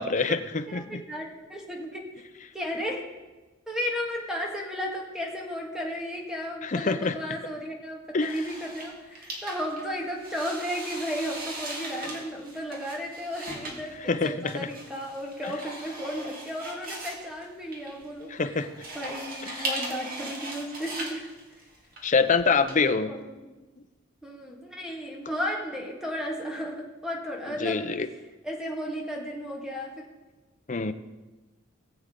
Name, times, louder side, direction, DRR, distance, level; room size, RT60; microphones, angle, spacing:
voice 1, 0.0-1.0 6.6-7.2 8.1-8.4 14.1-14.7 18.3-18.7 22.0-23.1 27.6-28.1 30.7-30.9, left 4 dB, 40° left, 9 dB, 0.6 m, -25 dB
voice 2, 0.7-2.0 2.5-3.0 3.7-18.6 18.9-21.3 23.1-23.4 24.2-27.9 28.4-29.9, equal, 5° right, -1 dB, 1.8 m, -34 dB
sound 1, 8.2-22.7, right 2 dB, 50° right, 2.0 m, -39 dB
19.5 x 7.8 x 3.8 m, 1.2 s
head